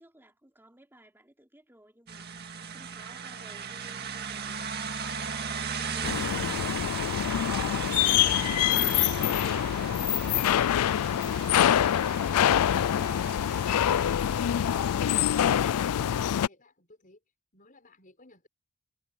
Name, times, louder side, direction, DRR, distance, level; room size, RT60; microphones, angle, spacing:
voice 1, 0.0-4.7, right 1 dB, 10° right, 3.2 m, -57 dB
sound 1, 2.1-15.5, right 6 dB, 45° right, 2.0 m, -38 dB
sound 2, 4.5-10.3, left 3 dB, 55° left, 6.2 m, -49 dB
sound 3, 6.0-16.5, left 10 dB, 90° left, 0.4 m, -25 dB
voice 2, 16.3-17.2 17.5-18.5, left 2 dB, 35° left, 5.6 m, -58 dB
head